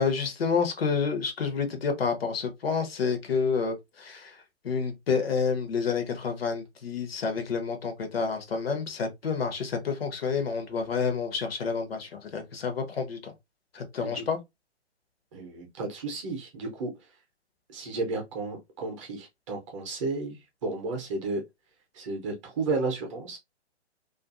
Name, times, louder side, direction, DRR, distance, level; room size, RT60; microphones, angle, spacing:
voice 1, 0.0-4.3 4.6-13.3 13.7-14.4, left 5 dB, 60° left, 0.8 m, -29 dB
voice 2, 15.3-16.9 17.7-20.4 20.6-21.4 21.9-23.4, right 3 dB, 30° right, 0.7 m, -32 dB
2.5 x 2.5 x 2.4 m
figure-of-eight pair, 135°, 34 cm